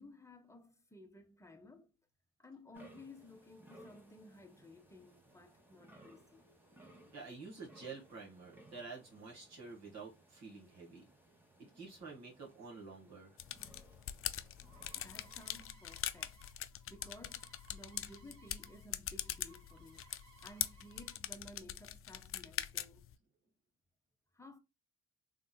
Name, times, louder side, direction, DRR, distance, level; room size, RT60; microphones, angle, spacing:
voice 1, 0.0-1.9 2.4-6.4 15.0-16.4 16.9-20.0 20.4-23.0 24.3-24.6, left 1 dB, 10° left, 0.7 m, -56 dB
sound 1, 2.7-15.7, right 1 dB, 5° right, 1.1 m, -62 dB
voice 2, 7.1-11.0 11.7-13.4, right 4 dB, 60° right, 1.7 m, -49 dB
sound 2, 13.4-23.1, left 11 dB, 45° left, 0.4 m, -43 dB
sound 3, 14.1-18.9 19.1-21.2, right 7 dB, 90° right, 1.9 m, -65 dB
3.6 x 2.6 x 2.2 m
cardioid pair, 90°, 30 cm